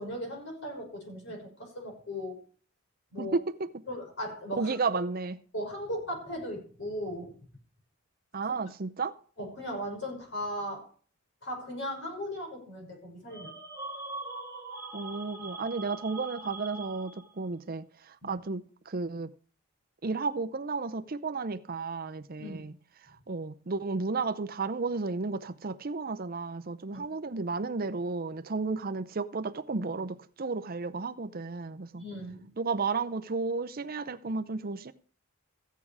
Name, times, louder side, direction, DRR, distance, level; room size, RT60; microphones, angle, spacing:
voice 1, 0.0-2.4 3.1-3.4 3.9-4.8 5.5-7.4 8.4-8.5 9.4-10.9 11.4-13.5 18.2-18.4 22.4-22.6 26.9-27.0 32.0-32.5, equal, 55° left, 5.7 m, -37 dB
voice 2, 3.2-3.7 4.6-5.4 8.3-9.1 14.9-19.3 20.0-22.7 23.0-32.0 32.6-34.9, right 4 dB, 40° right, 0.6 m, -33 dB
sound 1, 13.3-17.5, right 2 dB, 15° right, 1.7 m, -42 dB
15.0 x 9.4 x 4.8 m
head